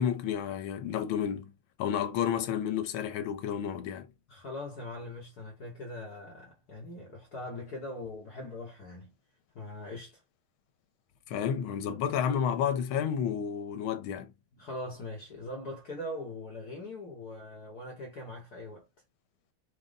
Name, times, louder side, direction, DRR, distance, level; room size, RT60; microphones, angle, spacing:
voice 1, 0.0-1.5 1.8-4.1 11.3-14.3, left 8 dB, 80° left, 1.5 m, -31 dB
voice 2, 4.3-9.1 9.5-10.2 14.5-18.9, left 1 dB, 60° left, 1.2 m, -41 dB
4.0 x 2.1 x 3.7 m
omnidirectional pair, 2.3 m